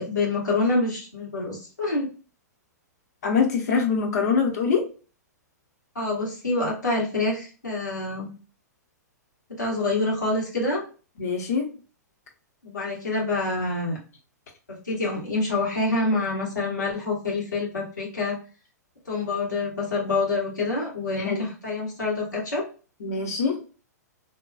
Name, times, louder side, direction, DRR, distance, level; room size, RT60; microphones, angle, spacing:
voice 1, 0.0-2.1 5.9-8.3 9.6-10.8 12.6-14.0 14.7-18.3 19.0-22.6, left 2 dB, 85° left, -5 dB, 1.5 m, -26 dB
voice 2, 3.2-4.9 11.2-11.7 21.2-21.4 23.0-23.6, left 5 dB, 65° left, 3 dB, 0.9 m, -24 dB
2.9 x 2.3 x 2.3 m, 0.36 s
figure-of-eight pair, 110°, 9 cm